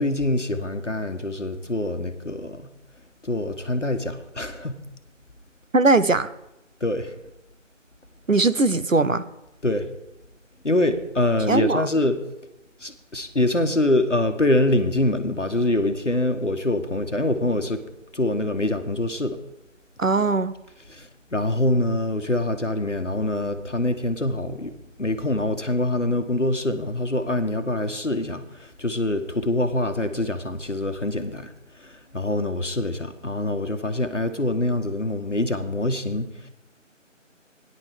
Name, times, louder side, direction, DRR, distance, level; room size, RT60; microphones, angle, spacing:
voice 1, 0.0-2.7 3.2-4.7 6.8-7.2 9.6-9.9 10.6-12.2 12.8-17.8 18.1-19.4 20.9-24.7 25.0-36.3, left 1 dB, 70° left, 7 dB, 1.3 m, -25 dB
voice 2, 5.7-6.3 8.3-9.2 11.5-11.8 20.0-20.5, right 3 dB, 80° right, 13 dB, 0.9 m, -20 dB
18.5 x 10.5 x 3.6 m, 0.90 s
figure-of-eight pair, 175°, 39 cm